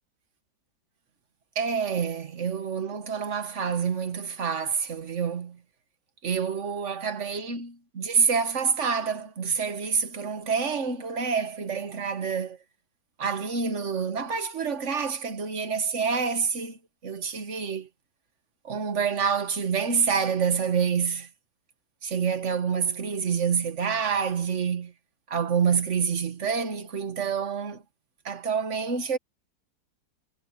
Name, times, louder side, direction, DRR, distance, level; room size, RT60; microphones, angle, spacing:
voice 1, 1.5-5.6 6.2-12.6 13.2-17.9 18.6-21.3 22.0-24.9 25.3-27.8 28.2-29.2, right 6 dB, 45° right, 1.5 m, -27 dB
omnidirectional pair, 2.0 m